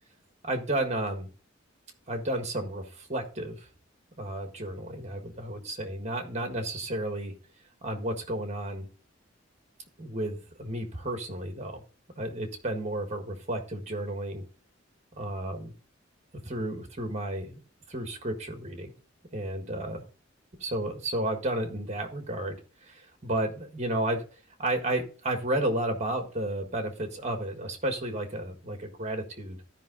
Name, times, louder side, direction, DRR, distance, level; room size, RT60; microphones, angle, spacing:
voice 1, 0.4-1.3 2.1-3.7 4.2-7.3 7.8-8.9 10.0-11.8 12.2-14.4 15.2-15.7 16.4-17.6 17.9-18.9 19.3-20.1 20.6-24.2 24.6-29.6, right 1 dB, 35° right, 5 dB, 1.6 m, -32 dB
13.0 x 5.5 x 3.9 m, 0.37 s
head